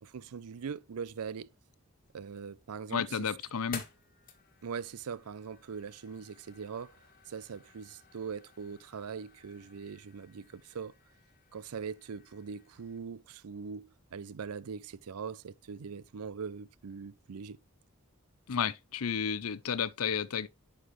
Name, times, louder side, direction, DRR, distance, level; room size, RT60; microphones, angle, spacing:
voice 1, 0.0-1.5 2.1-3.3 4.6-6.9 7.3-10.9 11.5-17.6, right 6 dB, 85° right, 0.5 m, -41 dB
sound 1, 2.0-13.0, left 5 dB, 40° left, 1.6 m, -53 dB
voice 2, 2.9-3.8 18.5-20.5, left 7 dB, 75° left, 0.6 m, -32 dB
9.9 x 5.9 x 3.2 m
head